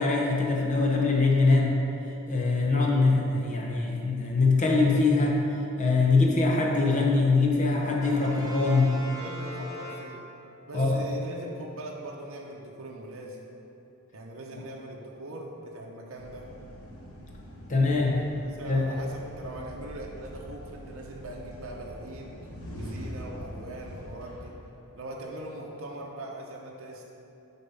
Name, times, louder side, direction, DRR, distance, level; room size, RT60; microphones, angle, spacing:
voice 1, 0.0-1.8 2.3-5.4 5.8-8.9 10.7-11.0 17.7-18.2 18.7-18.8, left 3 dB, 35° left, -1 dB, 0.7 m, -23 dB
Brass instrument, 8.0-10.6, equal, 15° right, 0.7 m, -41 dB
voice 2, 9.2-10.2 10.7-13.4 14.1-16.5 18.2-18.3 18.6-22.3 22.7-24.5 24.9-27.0, right 1 dB, 65° right, -2 dB, 0.7 m, -41 dB
sound 1, 16.2-25.2, equal, 70° left, 1.0 m, -43 dB
6.8 x 4.2 x 5.5 m, 2.8 s
head